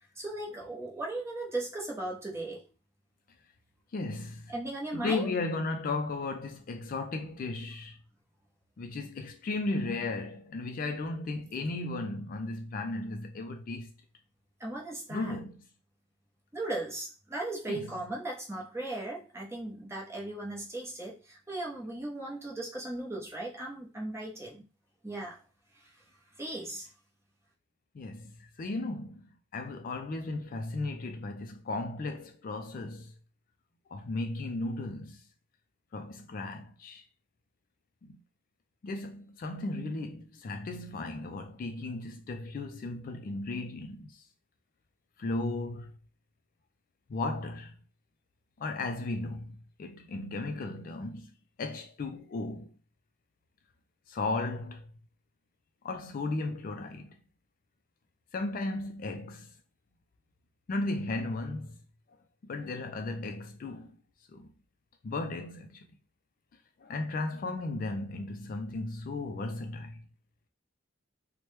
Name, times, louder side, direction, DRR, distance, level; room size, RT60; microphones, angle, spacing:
voice 1, 0.2-2.6 4.5-5.3 14.6-15.3 16.5-24.6 25.0-25.4 26.4-26.9, right 2 dB, 15° right, 0.8 m, -37 dB
voice 2, 3.9-4.5 4.9-8.0 8.8-13.9 15.1-15.6 17.7-17.9 27.9-33.1 33.9-35.2 35.9-37.0 38.0-38.2 38.8-44.2 45.2-45.9 47.1-47.7 48.6-51.3 51.6-52.7 54.1-54.8 55.8-57.1 58.3-59.5 60.7-61.8 62.4-64.0 64.3-64.5 65.0-65.8 66.8-70.0, left 2 dB, 45° left, 0.3 m, -35 dB
3.0 x 2.1 x 3.1 m
head